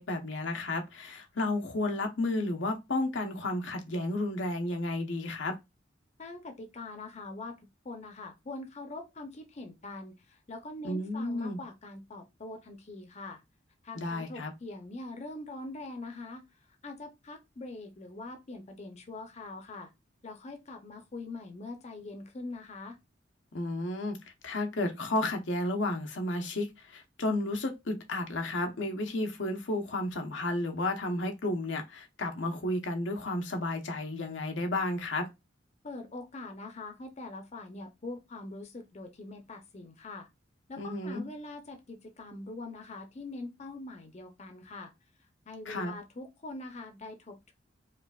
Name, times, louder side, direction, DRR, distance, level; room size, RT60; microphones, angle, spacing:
voice 1, 0.0-5.5 10.8-11.6 14.0-14.5 23.5-24.2 24.4-35.3 40.8-41.3 45.7-45.9, left 2 dB, 90° left, 0.8 m, -32 dB
voice 2, 6.2-7.5 7.8-13.4 13.8-16.4 16.8-19.9 20.2-23.0 35.8-40.3 40.7-44.9 45.5-47.5, left 2 dB, 40° left, 0.6 m, -43 dB
4.7 x 2.5 x 2.3 m
head